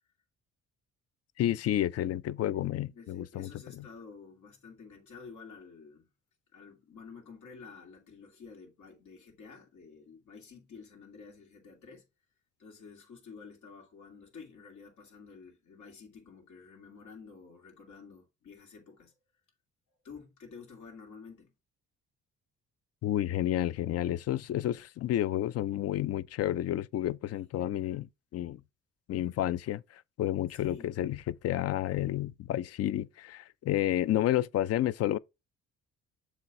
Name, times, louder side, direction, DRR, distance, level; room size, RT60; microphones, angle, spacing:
voice 1, 1.4-3.5 3.8-3.9 23.0-28.6 29.1-35.2, left 13 dB, 55° left, 0.4 m, -30 dB
voice 2, 2.9-6.1 6.5-12.0 12.6-19.1 20.0-21.5 27.3-27.4 30.5-30.9, left 5 dB, 70° left, 2.6 m, -50 dB
7.2 x 3.3 x 4.2 m
cardioid pair, 90°, 30 cm